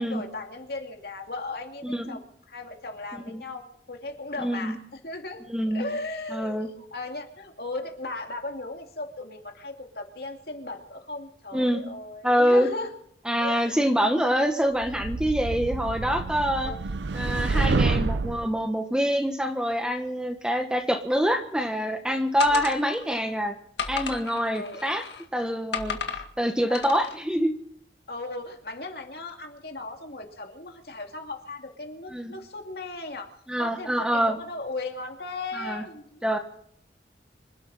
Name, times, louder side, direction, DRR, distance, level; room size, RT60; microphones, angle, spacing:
voice 1, 0.0-12.9 13.4-13.9 16.6-16.8 22.5-22.7 24.5-24.8 26.7-26.8 28.1-33.3 33.6-36.2, left 2 dB, 60° left, 3 dB, 2.6 m, -37 dB
voice 2, 1.8-2.2 3.3-3.4 4.4-4.8 5.5-5.9 6.3-6.7 11.5-11.8 12.2-12.7 13.2-16.7 17.1-23.5 23.9-25.0 25.3-26.0 26.4-27.5 32.1-32.3 33.5-34.4 35.5-35.8 36.2-36.4, equal, 5° right, 5 dB, 1.4 m, -25 dB
sound 1, 14.8-18.5, right 3 dB, 80° right, 0.6 m, -27 dB
sound 2, 22.4-23.2 23.8-25.3 25.7-26.3 26.7-27.2, left 6 dB, 75° left, 1.9 m, -34 dB
26.5 x 12.5 x 4.3 m, 0.66 s
head